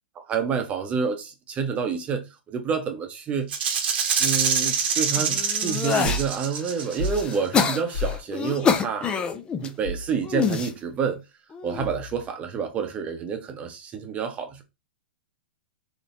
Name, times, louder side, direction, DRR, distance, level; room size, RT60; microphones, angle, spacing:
voice 1, 0.2-3.5 4.2-9.1 9.6-11.2 11.6-14.6, right 6 dB, 25° right, 0.8 m, -28 dB
Rattle (instrument), 3.5-7.4, right 6 dB, 70° right, 0.9 m, -25 dB
sound 1, 5.2-6.3 6.8-9.7 10.2-10.7 11.5-11.9, left 6 dB, 15° left, 0.4 m, -26 dB
sound 2, 6.0-6.3 7.0-7.2 7.9-8.2 9.8-10.2 11.8-12.3, left 2 dB, 75° left, 1.6 m, -30 dB
4.0 x 3.1 x 2.6 m
hypercardioid pair, 135°, 6 cm